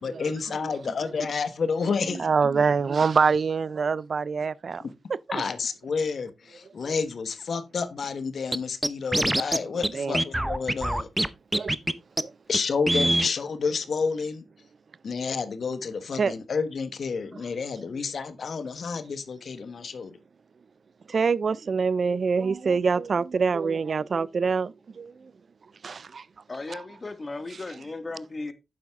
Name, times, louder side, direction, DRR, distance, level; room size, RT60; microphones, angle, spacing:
voice 1, 0.0-2.3 5.3-11.1 12.5-14.4 15.0-20.2, left 5 dB, 70° left, 1.3 m, -30 dB
voice 2, 2.2-4.8 9.9-10.2 11.5-11.7 12.2-12.3 16.2-16.3 21.1-25.3 25.8-26.2 26.7-26.8, right 5 dB, 60° right, 0.4 m, -25 dB
Scratching (performance technique), 8.5-8.6 8.8-9.6 9.8-9.9 10.1-11.3 11.5-11.9 12.2-12.3 12.5-12.6 12.9-13.3, right 1 dB, 10° right, 0.7 m, -23 dB
voice 3, 26.5-28.5, left 3 dB, 40° left, 1.7 m, -36 dB
9.2 x 7.2 x 3.6 m
cardioid pair, 55°, 0 cm